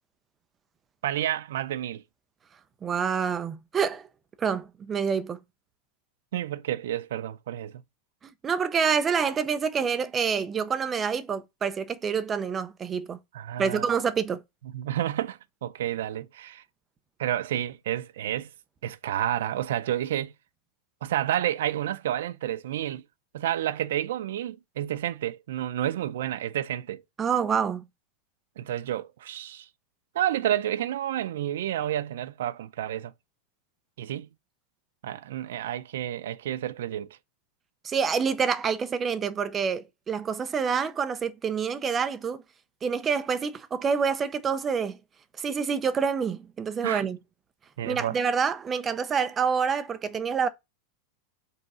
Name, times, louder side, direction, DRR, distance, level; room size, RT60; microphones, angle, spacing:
voice 1, 1.0-2.0 6.3-7.8 13.3-13.9 14.7-16.6 17.2-18.5 18.8-20.3 21.0-23.0 23.3-27.0 28.6-29.7 30.1-33.1 34.0-34.3 35.0-37.2 46.8-47.1 47.8-48.2, right 12 dB, 80° right, 0.5 m, -30 dB
voice 2, 2.8-4.1 4.4-5.4 8.4-13.2 13.6-14.4 27.2-27.8 37.8-42.4 42.8-45.0 45.4-47.2 47.8-50.5, right 6 dB, 15° right, 0.6 m, -27 dB
5.5 x 3.9 x 5.5 m
supercardioid pair, 165°, 0 cm